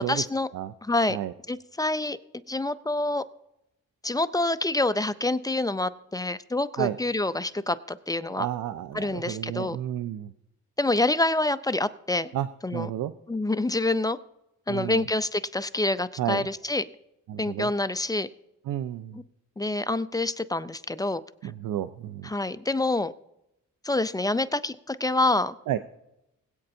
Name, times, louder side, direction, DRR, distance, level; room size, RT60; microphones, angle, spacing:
voice 1, 0.0-0.5 0.8-1.2 1.5-2.2 2.5-3.2 4.0-8.5 8.9-9.8 10.8-12.3 12.6-12.9 13.3-14.2 14.7-16.9 17.4-18.3 19.1-19.2 19.6-21.2 22.2-23.1 23.8-25.6, left 2 dB, 10° left, 12 dB, 0.4 m, -27 dB
voice 2, 8.4-10.3 12.3-13.1 14.7-15.0 16.2-16.5 17.3-17.7 18.7-19.2 21.4-22.3 25.7-25.8, right 11 dB, 80° right, 12 dB, 0.5 m, -31 dB
21.0 x 8.6 x 2.7 m, 0.87 s
cardioid pair, 95°, 32 cm